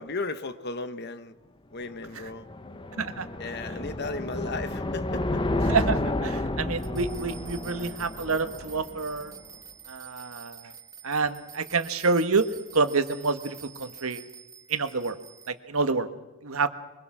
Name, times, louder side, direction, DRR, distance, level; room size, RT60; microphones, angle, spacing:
voice 1, 0.0-1.4 1.7-2.5 3.4-5.4, left 3 dB, 50° left, 11 dB, 1.2 m, -35 dB
sound 1, 1.9-9.2, left 1 dB, 25° left, 0.9 m, -31 dB
voice 2, 3.0-3.3 5.7-9.3 9.9-10.7 11.0-12.5 12.7-14.2 14.7-15.2 15.5-16.1 16.4-16.7, right 4 dB, 85° right, 9 dB, 1.4 m, -27 dB
sound 2, 6.8-15.5, right 8 dB, 15° right, 1.5 m, -47 dB
23.5 x 21.5 x 6.2 m, 1.1 s
head